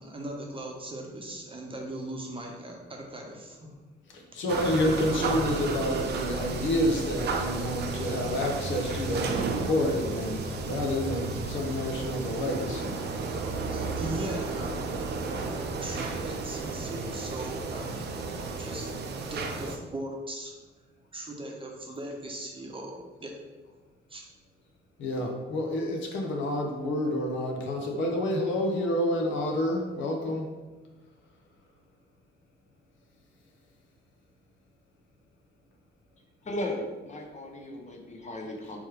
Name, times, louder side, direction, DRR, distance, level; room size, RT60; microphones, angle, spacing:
voice 1, 0.0-3.7 13.7-18.1 18.6-20.5 21.1-23.4 24.1-24.2, right 1 dB, 25° right, 0 dB, 0.8 m, -39 dB
voice 2, 4.1-13.0 25.0-30.4, left 1 dB, 70° left, 1 dB, 0.8 m, -29 dB
sound 1, 4.5-19.8, right 4 dB, 55° right, 0.5 m, -33 dB
voice 3, 36.4-38.8, left 1 dB, 35° left, 2 dB, 0.7 m, -36 dB
3.5 x 3.1 x 3.2 m, 1.2 s
cardioid pair, 90°, 20 cm